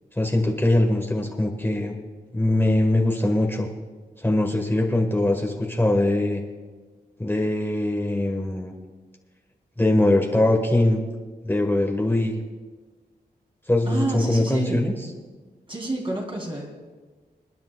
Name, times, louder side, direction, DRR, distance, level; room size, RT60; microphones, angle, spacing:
voice 1, 0.1-1.9 2.3-3.7 4.2-6.4 7.2-8.7 9.8-11.0 11.4-12.4 13.7-14.9, left 1 dB, 15° left, 0 dB, 1.4 m, -22 dB
voice 2, 13.8-15.0 15.7-16.9, right 2 dB, 30° right, -1 dB, 2.9 m, -29 dB
27.5 x 10.5 x 2.3 m, 1.4 s
wide cardioid pair, 95°, 17 cm